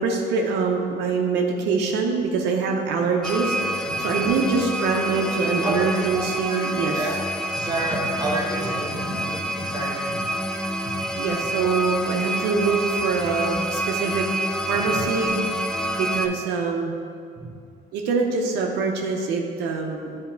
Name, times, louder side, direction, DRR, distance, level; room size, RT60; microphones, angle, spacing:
voice 1, 0.0-7.2 11.1-14.3 14.7-15.4 16.0-16.9 17.9-20.1, right 4 dB, 85° right, 1 dB, 0.6 m, -24 dB
sound 1, 3.2-16.3, right 1 dB, 5° left, 0.3 m, -27 dB
voice 2, 7.5-10.2 11.0-11.1, right 2 dB, 25° right, -1 dB, 1.3 m, -29 dB
8.1 x 2.9 x 4.4 m, 2.3 s
cardioid pair, 110°, 17 cm